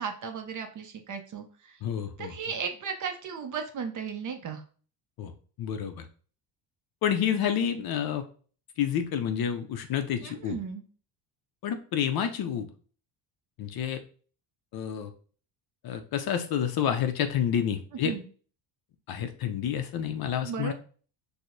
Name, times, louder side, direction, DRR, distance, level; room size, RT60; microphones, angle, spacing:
voice 1, 0.0-1.8 2.2-4.6 10.2-10.8 17.9-18.3 20.4-20.7, right 6 dB, 40° right, 5 dB, 0.5 m, -35 dB
voice 2, 1.8-2.3 5.2-5.3 5.6-6.0 7.0-8.3 8.8-10.6 11.6-12.7 13.6-14.0 14.7-15.1 15.8-18.1 19.1-20.7, left 9 dB, 50° left, 8 dB, 0.5 m, -29 dB
4.4 x 2.1 x 2.5 m, 0.41 s
cardioid pair, 120°, 50 cm